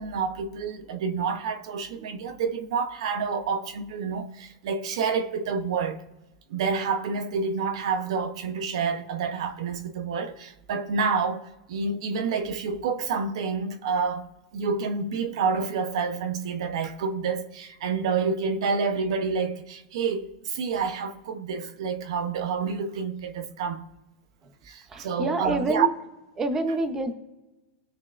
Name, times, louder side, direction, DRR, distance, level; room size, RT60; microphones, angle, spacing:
voice 1, 0.0-6.0 6.5-23.8 24.6-25.9, right 5 dB, 70° right, 1.0 m, -28 dB
voice 2, 24.9-25.9 26.4-27.1, right 2 dB, 15° right, 0.9 m, -27 dB
19.0 x 6.6 x 2.6 m
supercardioid pair, 155°, 3 cm